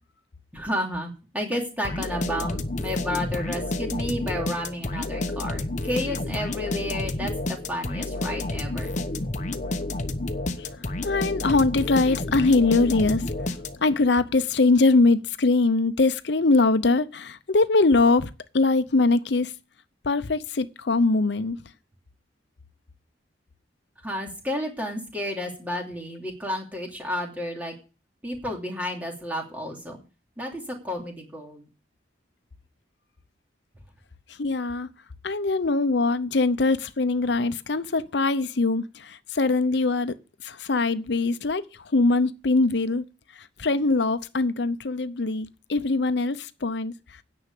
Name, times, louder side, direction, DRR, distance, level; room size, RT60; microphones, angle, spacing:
voice 1, 0.5-9.0 24.0-27.8 28.2-30.0 30.4-31.7, equal, 10° right, 2.9 m, -31 dB
sound 1, 1.8-14.0, left 2 dB, 40° left, 0.9 m, -30 dB
voice 2, 11.0-13.2 13.8-18.3 18.5-19.5 20.0-21.6 34.4-34.9 35.2-40.1 40.4-41.6 41.9-43.0 43.6-46.9, left 3 dB, 65° left, 0.7 m, -22 dB
10.0 x 6.2 x 8.3 m
head